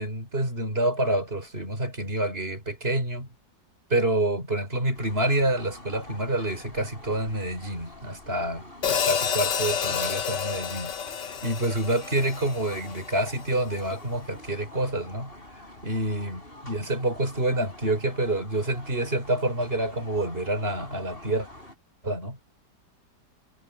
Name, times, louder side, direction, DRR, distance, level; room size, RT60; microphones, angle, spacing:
voice 1, 0.0-3.3 3.9-10.9 11.4-15.3 15.8-21.5 22.0-22.4, right 1 dB, 30° right, 5.3 m, -27 dB
sound 1, 4.9-21.8, left 1 dB, 30° left, 7.2 m, -46 dB
Hi-hat, 8.8-13.1, left 7 dB, 75° left, 2.1 m, -29 dB
omnidirectional pair, 1.9 m